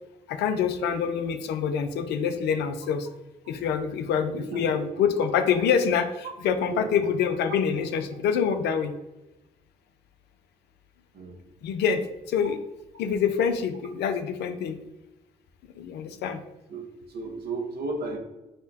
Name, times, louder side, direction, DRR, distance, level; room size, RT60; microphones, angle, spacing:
voice 1, 0.3-3.1 3.5-8.9 11.6-12.6 13.0-14.8 15.7-16.4, left 7 dB, 70° left, 9 dB, 0.5 m, -26 dB
voice 2, 4.3-4.8 6.7-7.0 11.1-11.4 16.7-16.8 17.1-18.2, right 3 dB, 65° right, 2 dB, 1.1 m, -34 dB
4.3 x 2.2 x 4.0 m, 0.99 s
hypercardioid pair, 50°, 18 cm